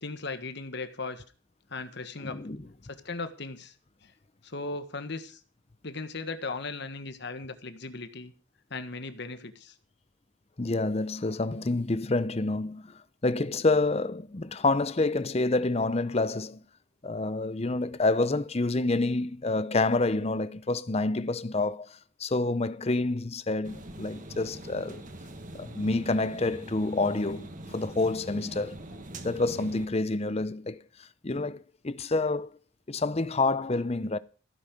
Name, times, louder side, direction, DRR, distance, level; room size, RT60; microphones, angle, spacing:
voice 1, 0.0-1.2 1.7-2.4 2.9-3.7 4.0-4.1 4.4-5.4 5.8-8.3 8.7-9.7, left 3 dB, 55° left, 1.5 m, -37 dB
voice 2, 2.2-2.6 10.6-16.6 17.0-25.0 25.5-28.8 29.2-32.5 32.9-34.2, left 2 dB, 30° left, 0.6 m, -28 dB
sound 1, 23.6-29.9, right 1 dB, 40° right, 1.7 m, -43 dB
15.5 x 9.6 x 5.3 m
head